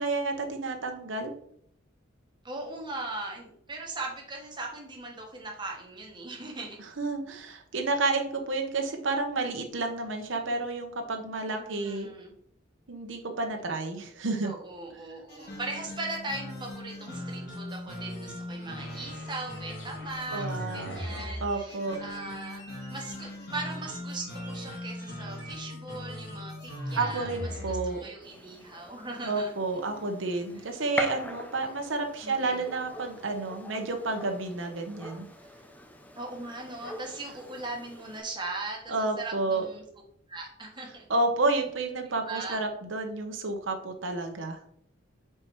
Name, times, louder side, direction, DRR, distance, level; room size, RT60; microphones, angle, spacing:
voice 1, 0.0-1.3 6.8-12.1 12.9-14.5 20.3-22.0 26.9-28.0 29.2-35.3 38.9-39.7 41.1-44.6, right 3 dB, 80° right, 4 dB, 0.9 m, -30 dB
voice 2, 2.4-6.8 11.6-12.3 14.4-20.5 20.7-27.8 28.0-30.0 30.7-30.8 32.2-32.7 36.2-39.8 40.3-41.0 42.2-42.6, right 2 dB, 25° right, 0 dB, 1.4 m, -39 dB
sound 1, 15.3-28.1, left 1 dB, 55° left, 1.8 m, -39 dB
sound 2, 18.8-25.5, equal, 75° left, 2.6 m, -50 dB
Gunshot gunfire, 28.2-38.2, left 1 dB, 10° left, 0.6 m, -42 dB
4.8 x 4.5 x 4.6 m, 0.66 s
head